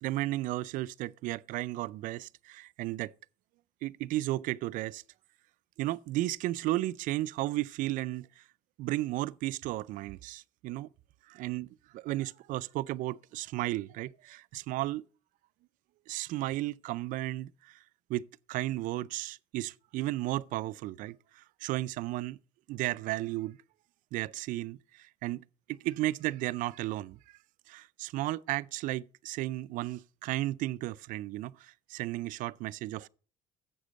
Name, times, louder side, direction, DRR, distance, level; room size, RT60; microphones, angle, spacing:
voice 1, 0.0-3.1 3.8-5.0 5.8-8.4 8.8-10.9 11.3-11.7 11.9-15.1 16.1-17.8 18.1-22.4 22.7-23.6 24.1-25.4 25.7-27.4 27.7-33.1, right 16 dB, 65° right, 0.4 m, -34 dB
7.6 x 6.6 x 6.2 m
cardioid pair, 125°, 15 cm